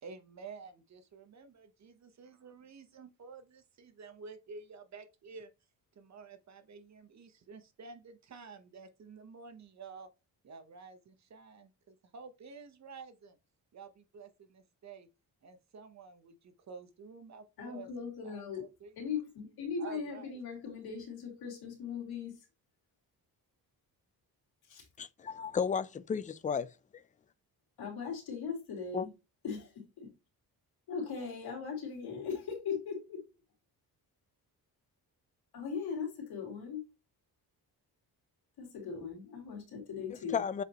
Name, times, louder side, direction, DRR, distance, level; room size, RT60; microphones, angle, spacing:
voice 1, 0.0-5.5 6.0-10.1 10.4-13.4 13.7-15.1 15.4-17.9 18.2-18.9 19.8-20.4, right 5 dB, 45° right, 1.0 m, -50 dB
voice 2, 17.6-18.7 19.0-22.5 24.6-24.9 27.8-29.1 29.4-30.1 30.9-33.2 35.5-36.8 38.6-40.4, left 6 dB, 80° left, 3.1 m, -39 dB
voice 3, 25.0-26.7 28.9-29.1 40.3-40.6, left 6 dB, 20° left, 0.4 m, -33 dB
7.7 x 5.1 x 3.0 m
cardioid pair, 150°, 37 cm